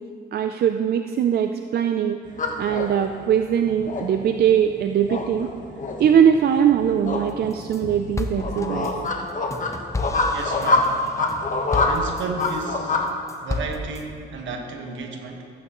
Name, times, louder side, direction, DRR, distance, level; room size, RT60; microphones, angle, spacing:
voice 1, 0.3-2.2 2.6-5.5 6.0-8.9, right 8 dB, 55° right, 7 dB, 0.4 m, -21 dB
sound 1, 2.3-13.1, left 3 dB, 40° left, 1.3 m, -26 dB
sound 2, 7.3-7.8 8.2-12.7 13.1-14.0, left 2 dB, 15° left, 0.7 m, -32 dB
voice 2, 10.3-11.0 11.7-13.0 13.4-15.5, right 3 dB, 70° right, 3 dB, 1.4 m, -32 dB
14.5 x 8.6 x 3.0 m, 2.3 s
cardioid pair, 90°, 20 cm